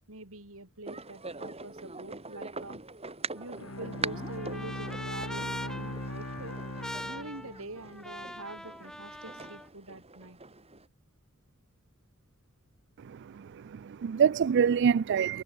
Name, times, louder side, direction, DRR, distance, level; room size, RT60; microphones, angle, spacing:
voice 1, 0.1-2.8 3.3-6.6 7.0-10.4, right 2 dB, 70° right, 5.6 m, -45 dB
sound 1, 0.9-10.9, right 3 dB, 30° right, 8.0 m, -43 dB
Trumpet, 3.4-9.7, equal, 5° left, 3.7 m, -43 dB
Bowed string instrument, 3.6-8.0, left 1 dB, 70° left, 5.0 m, -39 dB
voice 2, 13.1-15.4, right 7 dB, 55° right, 0.4 m, -26 dB
head